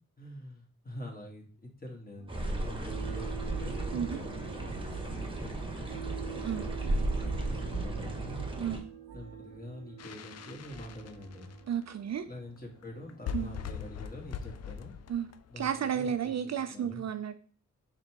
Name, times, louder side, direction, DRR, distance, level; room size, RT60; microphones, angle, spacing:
voice 1, 0.2-6.2 6.8-8.4 9.1-11.6 12.2-14.9 15.5-17.0, left 1 dB, 25° left, -1 dB, 1.6 m, -46 dB
sound 1, 2.2-14.7, right 8 dB, 85° right, 0.7 m, -47 dB
sound 2, 2.3-8.8, right 2 dB, 15° right, 1.1 m, -35 dB
sound 3, 10.0-11.8 12.6-12.7 12.8-12.9 13.1-16.2, left 7 dB, 50° left, 0.4 m, -41 dB
voice 2, 11.7-12.3 13.3-13.5 15.1-15.3 15.6-17.3, right 8 dB, 55° right, 9 dB, 0.4 m, -32 dB
4.0 x 3.4 x 2.9 m, 0.40 s
cardioid pair, 45°, 33 cm